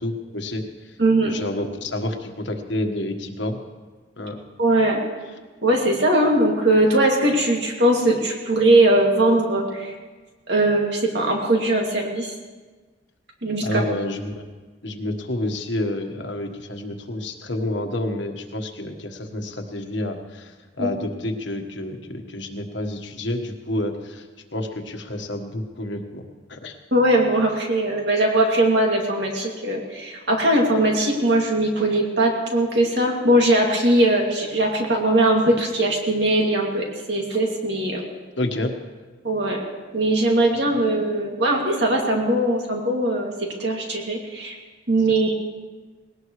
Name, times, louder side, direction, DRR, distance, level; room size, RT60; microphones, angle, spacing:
voice 1, 0.0-3.6 4.2-4.4 13.6-14.4 14.8-24.3 24.5-26.2 26.5-26.8 38.1-38.7 40.7-40.8, left 1 dB, 70° left, 4 dB, 1.4 m, -29 dB
voice 2, 1.0-1.3 4.6-5.0 5.6-9.9 10.5-12.3 13.4-13.7 20.8-20.9 26.9-38.0 39.2-39.6 39.9-44.5 44.9-45.3, right 1 dB, 60° right, 0 dB, 2.5 m, -20 dB
19.5 x 18.0 x 3.2 m, 1.3 s
head